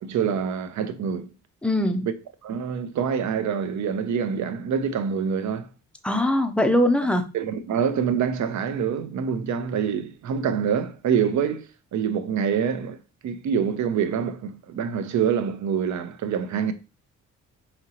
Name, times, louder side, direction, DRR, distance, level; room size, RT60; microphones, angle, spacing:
voice 1, 0.0-1.3 2.4-5.7 7.3-13.0 13.2-16.7, right 7 dB, 65° right, 0.6 m, -26 dB
voice 2, 1.6-2.1 6.0-7.2, left 1 dB, 5° left, 0.4 m, -21 dB
5.1 x 2.9 x 2.9 m
cardioid pair, 125°, 31 cm